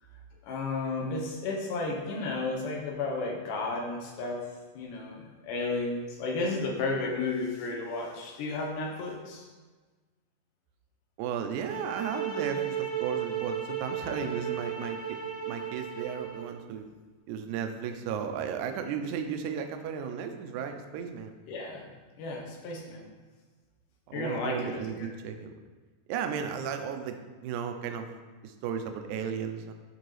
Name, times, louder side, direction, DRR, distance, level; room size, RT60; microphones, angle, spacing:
voice 1, 0.4-9.5 21.5-21.9 22.2-23.1 24.1-25.1, left 3 dB, 75° left, 0 dB, 2.5 m, -33 dB
voice 2, 11.2-16.9 17.3-21.3 24.1-25.5 26.1-28.1 28.4-29.7, right 7 dB, 80° right, 6 dB, 1.9 m, -34 dB
sound 1, 11.5-16.5, right 8 dB, 30° left, 1.1 m, -35 dB
10.5 x 3.8 x 3.2 m, 1.3 s
omnidirectional pair, 3.8 m